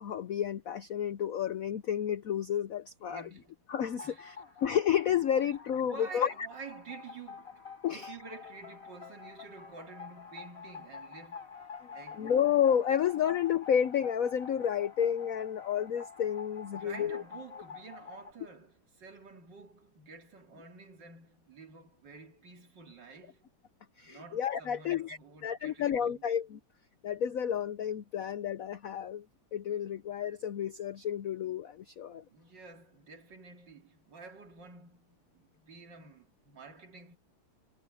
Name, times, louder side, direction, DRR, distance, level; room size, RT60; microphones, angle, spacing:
voice 1, 0.0-3.3 3.7-4.4 4.6-6.3 7.8-8.1 12.2-17.2 24.0-26.6 27.0-29.2 29.5-32.2, left 9 dB, 75° left, 0.7 m, -31 dB
voice 2, 3.1-3.6 4.0-4.4 5.8-11.5 11.9-12.3 16.7-23.5 24.0-26.2 32.3-37.2, right 4 dB, 55° right, 3.2 m, -50 dB
sound 1, 3.7-18.3, left 6 dB, 35° left, 6.8 m, -48 dB
omnidirectional pair, 2.4 m